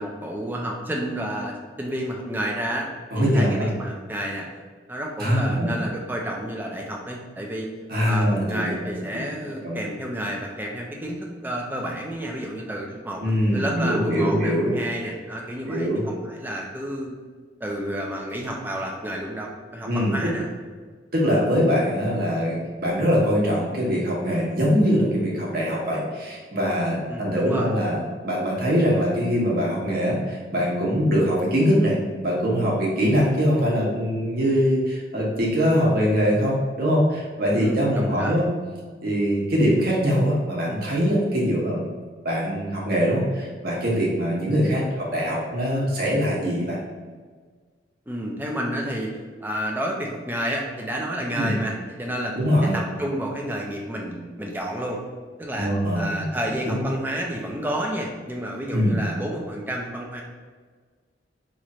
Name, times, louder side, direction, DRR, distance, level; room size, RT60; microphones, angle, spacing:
voice 1, 0.0-2.9 3.1-4.5 4.9-7.7 8.0-17.2 17.6-20.5 27.1-27.7 37.6-38.3 48.1-49.1 49.4-55.0 55.4-60.2, right 1 dB, 10° right, 0 dB, 0.4 m, -30 dB
voice 2, 3.1-3.7 5.2-5.7 7.9-8.8 9.6-9.8 13.2-14.8 15.7-16.0 19.9-20.1 21.1-28.0 28.2-38.4 39.0-41.8 42.2-46.8 51.3-51.5 52.4-52.8 55.6-56.3 56.6-56.8 58.7-59.0, equal, 50° right, -4 dB, 1.0 m, -22 dB
3.1 x 2.5 x 4.1 m, 1.5 s
head